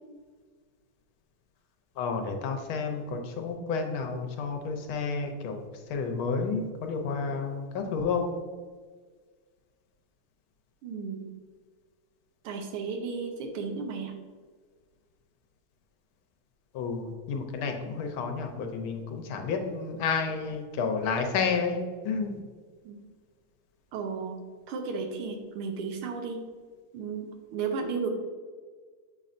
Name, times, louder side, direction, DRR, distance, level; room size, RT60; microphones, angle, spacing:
voice 1, 2.0-8.3 16.7-22.4, left 5 dB, 75° left, 4 dB, 1.5 m, -31 dB
voice 2, 10.8-11.3 12.4-14.1 22.8-23.0 23.9-24.4 24.7-26.4 26.9-28.1, right 5 dB, 85° right, 4 dB, 1.7 m, -34 dB
7.4 x 5.3 x 2.5 m, 1.5 s
omnidirectional pair, 2.4 m